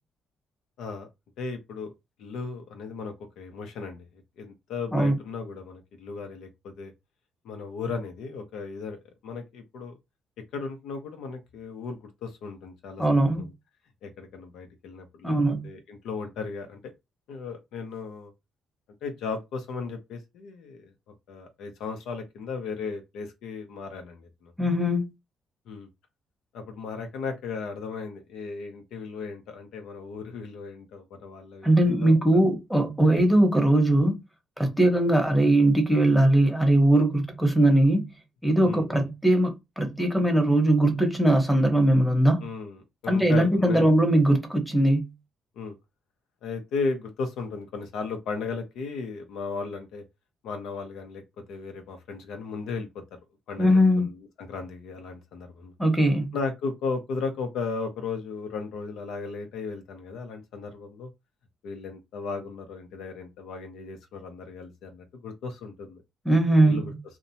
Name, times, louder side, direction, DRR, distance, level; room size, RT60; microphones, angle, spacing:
voice 1, 0.8-1.1 1.4-1.9 2.2-4.1 4.4-6.9 7.4-9.9 10.5-13.0 13.4-13.5 14.0-15.3 15.6-16.8 17.3-18.3 19.0-20.9 21.3-24.5 25.7-25.9 26.5-32.1 38.6-39.1 42.4-43.9 45.6-45.8 46.4-50.0 50.4-51.2 51.5-53.0 53.5-55.7 56.3-61.1 61.6-66.0 66.7-66.9, left 4 dB, 85° left, 0.7 m, -36 dB
voice 2, 13.0-13.5 15.2-15.6 24.6-25.1 31.6-34.2 34.6-38.0 38.4-42.4 43.1-45.1 53.6-54.1 55.8-56.3 66.2-66.9, right 1 dB, 5° left, 0.9 m, -20 dB
2.7 x 2.1 x 2.7 m
cardioid pair, 90°, 0 cm